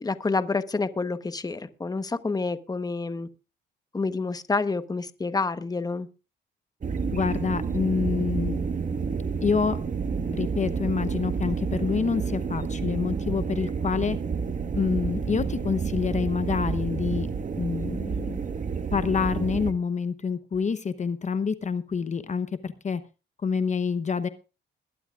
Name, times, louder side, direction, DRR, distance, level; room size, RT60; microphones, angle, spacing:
voice 1, 0.0-3.3 3.9-6.1, left 3 dB, 20° left, 1.1 m, -28 dB
sound 1, 6.8-19.7, right 5 dB, 40° right, 1.4 m, -29 dB
voice 2, 7.1-8.6 9.4-9.8 10.3-14.2 14.7-17.3 17.6-18.4 18.9-23.0 23.4-24.3, left 5 dB, 35° left, 0.9 m, -27 dB
21.5 x 12.0 x 2.4 m
cardioid pair, 90°, 20 cm